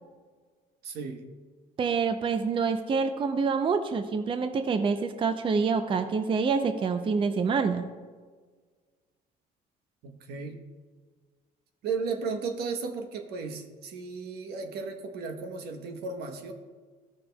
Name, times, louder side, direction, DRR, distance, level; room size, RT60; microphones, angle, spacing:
voice 1, 0.8-1.4 10.0-10.6 11.8-16.5, right 4 dB, 75° right, 5 dB, 1.0 m, -35 dB
voice 2, 1.8-7.9, right 5 dB, 30° right, 8 dB, 0.5 m, -27 dB
14.5 x 6.4 x 2.2 m, 1.5 s
cardioid pair, 110°, 17 cm